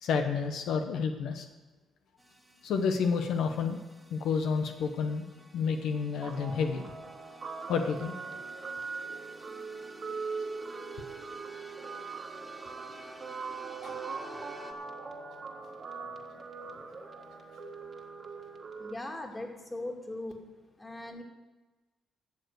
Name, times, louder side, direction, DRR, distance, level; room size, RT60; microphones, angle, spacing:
voice 1, 0.0-1.5 2.6-3.8 4.1-5.2 5.5-6.9 7.7-8.2 13.8-13.9, left 5 dB, 80° left, 5 dB, 1.0 m, -30 dB
sound 1, 2.2-14.7, right 1 dB, 5° right, 1.8 m, -52 dB
Guitar, 6.2-18.9, right 4 dB, 45° right, 1.7 m, -41 dB
voice 2, 18.7-20.3 20.8-21.2, left 2 dB, 15° left, 2 dB, 2.3 m, -39 dB
12.5 x 7.0 x 8.0 m, 1.2 s
cardioid pair, 90°, 0 cm